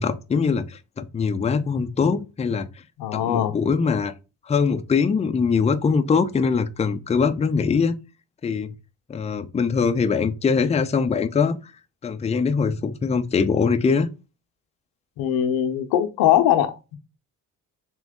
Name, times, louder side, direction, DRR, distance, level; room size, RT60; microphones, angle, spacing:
voice 1, 0.0-2.7 3.1-4.1 4.5-8.0 8.4-8.7 9.1-11.7 12.0-14.1, left 5 dB, 20° left, 0.4 m, -22 dB
voice 2, 3.0-3.6 15.2-17.0, left 11 dB, 85° left, 0.7 m, -21 dB
3.6 x 3.1 x 3.5 m
cardioid pair, 80°, 34 cm